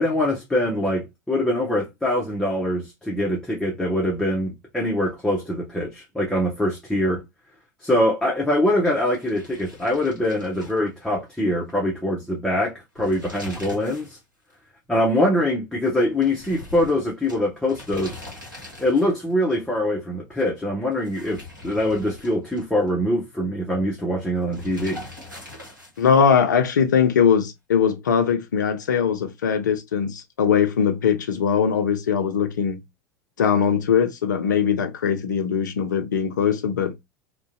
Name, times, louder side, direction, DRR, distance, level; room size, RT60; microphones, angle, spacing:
voice 1, 0.0-7.2 7.8-14.2 14.9-18.2 18.8-25.1, left 1 dB, 5° left, 0.6 m, -23 dB
sound 1, 8.9-11.4 11.7-11.8 12.8-14.2 14.5-14.6 16.2-19.3 20.9-22.9 24.5-26.2, left 2 dB, 90° right, 0.9 m, -42 dB
voice 2, 26.0-32.8 33.4-37.0, left 7 dB, 70° left, 0.5 m, -21 dB
2.4 x 2.2 x 2.4 m
figure-of-eight pair, 80°, 10 cm